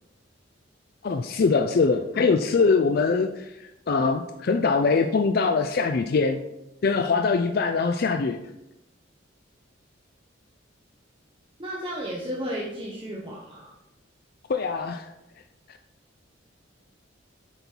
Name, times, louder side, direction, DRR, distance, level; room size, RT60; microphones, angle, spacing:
voice 1, 1.0-6.4 6.8-8.4 14.5-15.1 15.7-15.8, left 4 dB, 50° left, 6 dB, 0.4 m, -23 dB
voice 2, 11.6-13.7, equal, 25° right, -5 dB, 1.1 m, -33 dB
7.9 x 5.4 x 4.5 m, 0.93 s
head